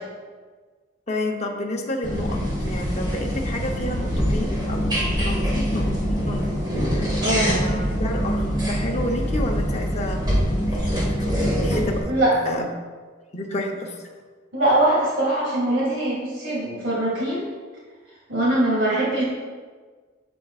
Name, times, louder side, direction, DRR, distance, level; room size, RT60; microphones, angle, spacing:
voice 1, 1.1-4.9 5.2-5.9 6.2-6.5 6.9-12.6 13.3-14.0, left 1 dB, 35° left, 1 dB, 0.8 m, -30 dB
sound 1, 2.0-12.0, equal, 20° right, 1.8 m, -24 dB
voice 2, 7.2-7.5 12.1-12.3 14.5-17.4 18.3-19.2, right 1 dB, 75° right, -6 dB, 2.2 m, -22 dB
8.3 x 7.0 x 2.4 m, 1.5 s
head